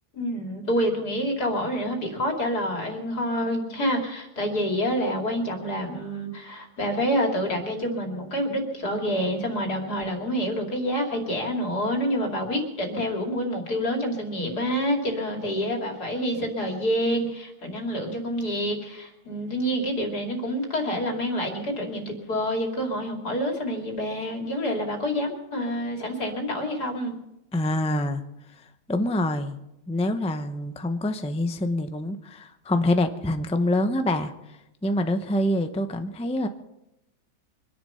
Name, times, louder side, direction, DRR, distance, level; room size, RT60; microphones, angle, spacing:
voice 1, 0.1-27.2, equal, 80° left, 2 dB, 3.2 m, -27 dB
voice 2, 27.5-28.2 28.6-29.6 29.9-36.5, left 1 dB, 5° left, 8 dB, 0.5 m, -26 dB
24.5 x 10.5 x 5.6 m, 0.89 s
omnidirectional pair, 1.7 m